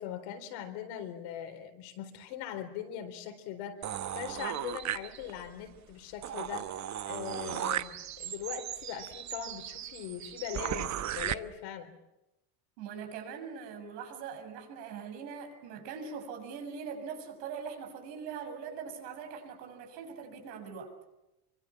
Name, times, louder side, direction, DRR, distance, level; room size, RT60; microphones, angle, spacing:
voice 1, 0.0-6.7 7.1-11.9, left 9 dB, 65° left, 7 dB, 4.2 m, -41 dB
sound 1, 3.8-5.5 5.9-6.0 6.2-11.3, right 11 dB, 35° right, 1.0 m, -36 dB
voice 2, 12.8-20.9, right 6 dB, 80° right, 5 dB, 7.2 m, -42 dB
24.5 x 24.5 x 7.3 m, 0.92 s
supercardioid pair, 120°, 49 cm